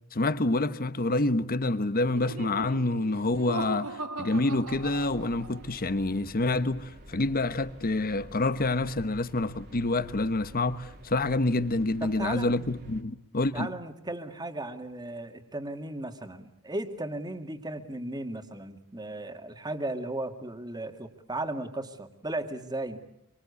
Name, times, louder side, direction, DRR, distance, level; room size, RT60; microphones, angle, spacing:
voice 1, 0.1-13.7, left 2 dB, 40° left, 1.2 m, -27 dB
Laughter, 2.0-5.7, right 2 dB, 70° right, 1.5 m, -39 dB
sound 1, 4.7-13.0, equal, 50° right, 2.6 m, -49 dB
voice 2, 12.0-12.5 13.5-23.0, right 2 dB, 20° right, 2.2 m, -36 dB
26.5 x 24.5 x 8.4 m
head